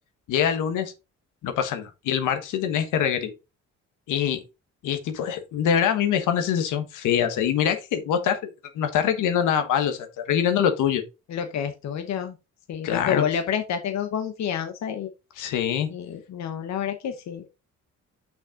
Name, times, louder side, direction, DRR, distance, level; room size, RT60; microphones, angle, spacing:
voice 1, 0.3-0.9 1.4-3.3 4.1-4.4 4.8-8.4 8.7-11.0 12.8-13.2 15.4-15.9, left 8 dB, 85° left, 1.4 m, -24 dB
voice 2, 11.3-12.4 12.7-15.1 15.9-17.5, left 8 dB, 65° left, 1.0 m, -29 dB
6.3 x 6.2 x 3.7 m
cardioid pair, 90°, 30 cm